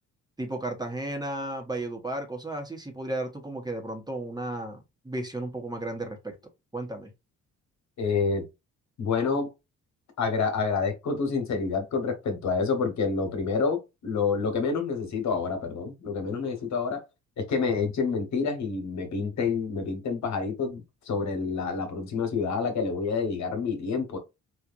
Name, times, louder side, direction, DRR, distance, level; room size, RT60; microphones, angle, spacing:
voice 1, 0.4-6.3 6.7-7.1, right 1 dB, 15° right, 1.1 m, -34 dB
voice 2, 8.0-8.4 9.0-9.5 10.2-17.0 17.4-24.2, left 5 dB, 65° left, 1.3 m, -28 dB
4.5 x 2.5 x 2.5 m
cardioid pair, 90°, 30 cm